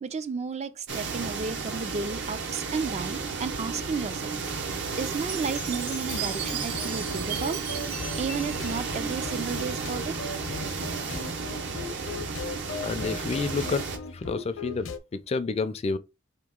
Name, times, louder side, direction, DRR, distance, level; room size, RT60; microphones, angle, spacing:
voice 1, 0.0-4.3 5.0-7.7 8.2-10.2, right 5 dB, 35° right, 0.4 m, -33 dB
sound 1, 0.9-14.0, right 4 dB, 65° right, 0.8 m, -33 dB
Chime, 5.3-9.6, right 7 dB, 85° right, 1.2 m, -37 dB
sound 2, 6.1-15.0, left 3 dB, 75° left, 0.7 m, -39 dB
voice 2, 12.8-13.9 14.1-16.0, left 4 dB, 30° left, 0.4 m, -29 dB
4.2 x 2.9 x 3.6 m
head